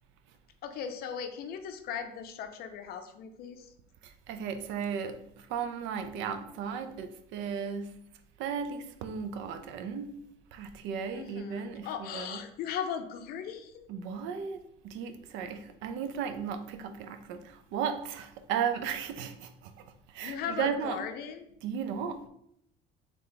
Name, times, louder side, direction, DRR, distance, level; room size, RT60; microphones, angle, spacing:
voice 1, 0.6-3.7 11.1-13.9 20.2-21.5, left 7 dB, 50° left, 0.6 m, -38 dB
voice 2, 4.0-7.9 8.4-10.1 10.5-12.4 13.9-21.0 21.6-22.2, right 7 dB, 65° right, 0.6 m, -35 dB
3.4 x 3.3 x 4.0 m
cardioid pair, 155°, 21 cm